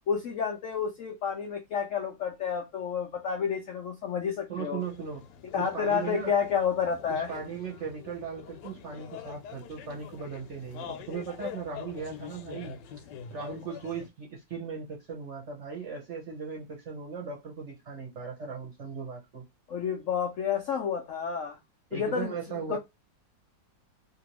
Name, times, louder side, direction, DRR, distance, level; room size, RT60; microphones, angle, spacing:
voice 1, 0.1-4.8 5.5-7.3 19.7-21.6 21.9-22.3 22.7-22.8, left 7 dB, 90° left, 0.6 m, -30 dB
voice 2, 4.5-5.3 5.6-6.4 7.1-12.8 13.3-19.5 21.9-22.8, right 5 dB, 50° right, 0.9 m, -38 dB
sound 1, 4.8-14.1, left 9 dB, 75° left, 1.2 m, -45 dB
2.9 x 2.7 x 2.8 m
omnidirectional pair, 2.0 m